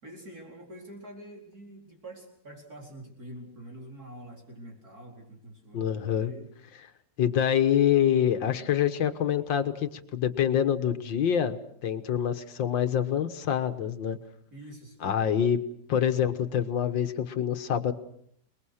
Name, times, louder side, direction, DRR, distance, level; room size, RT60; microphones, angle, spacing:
voice 1, 0.0-6.5 14.5-15.2, right 1 dB, 50° right, -1 dB, 4.8 m, -46 dB
voice 2, 5.7-6.3 7.2-14.2 15.0-15.6 15.9-17.9, left 9 dB, 90° left, 9 dB, 2.0 m, -26 dB
29.0 x 21.0 x 6.5 m, 0.69 s
omnidirectional pair, 2.0 m